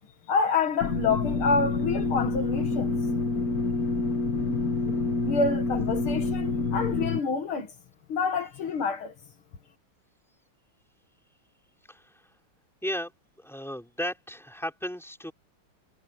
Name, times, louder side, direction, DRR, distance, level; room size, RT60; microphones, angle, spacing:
voice 1, 0.3-3.0 5.2-7.7 8.1-9.1, left 4 dB, 70° left, 2.5 m, -27 dB
sound 1, 0.8-7.2, left 3 dB, 45° left, 1.9 m, -27 dB
voice 2, 11.9-12.2 12.8-13.1 13.4-15.3, equal, ahead, 5.9 m, -35 dB
omnidirectional pair, 2.4 m